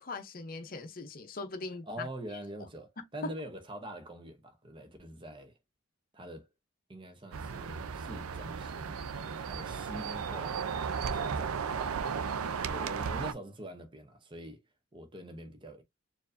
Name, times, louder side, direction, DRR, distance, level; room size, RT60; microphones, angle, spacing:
voice 1, 0.0-2.1 3.0-3.3, left 3 dB, 40° left, 0.7 m, -40 dB
voice 2, 1.9-5.6 6.1-6.5 6.9-12.1 12.7-14.6 14.9-15.8, right 1 dB, 20° right, 0.8 m, -45 dB
sound 1, 7.3-13.3, right 6 dB, 85° right, 0.5 m, -35 dB
4.5 x 2.6 x 2.6 m
head